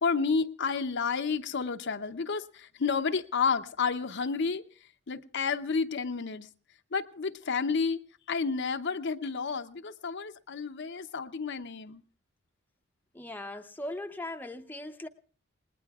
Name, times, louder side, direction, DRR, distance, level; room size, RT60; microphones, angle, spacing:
voice 1, 0.0-4.6 5.1-6.5 6.9-8.0 8.3-12.0, left 5 dB, 55° left, 0.7 m, -30 dB
voice 2, 13.1-15.1, left 1 dB, 10° left, 0.7 m, -39 dB
28.5 x 20.0 x 2.4 m
head